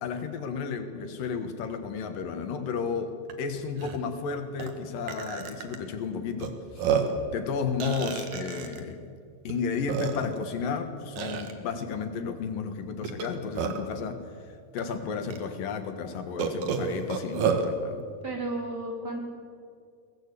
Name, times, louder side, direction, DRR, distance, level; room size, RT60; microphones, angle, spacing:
voice 1, 0.0-7.0 7.3-9.0 9.4-18.1, left 5 dB, 70° left, 7 dB, 3.1 m, -33 dB
Burping eructation, 3.3-3.4 3.8-4.0 4.6-4.7 5.1-5.8 6.4-6.5 6.8-7.2 7.8-8.8 9.5-9.6 9.9-10.4 11.2-11.5 13.0-13.9 14.8-14.9 15.3-15.4 16.4-17.7, right 7 dB, 60° right, 2.9 m, -29 dB
voice 2, 18.2-19.2, right 2 dB, 30° right, 0 dB, 3.5 m, -33 dB
22.5 x 19.0 x 8.4 m, 2.2 s
omnidirectional pair, 4.1 m